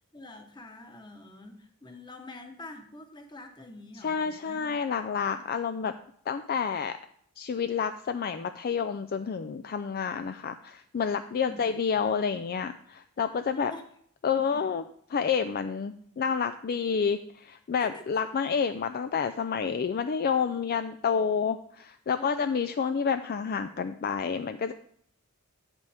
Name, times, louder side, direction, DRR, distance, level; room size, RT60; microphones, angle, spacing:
voice 1, 0.1-5.1 11.4-11.6 13.5-13.8 14.4-14.6 17.8-18.3 22.2-22.6, left 2 dB, 20° left, 5 dB, 1.1 m, -46 dB
voice 2, 4.0-5.9 6.3-7.0 7.4-13.7 14.2-14.8 15.1-24.7, left 6 dB, 45° left, 9 dB, 0.4 m, -29 dB
9.2 x 8.1 x 3.4 m, 0.63 s
head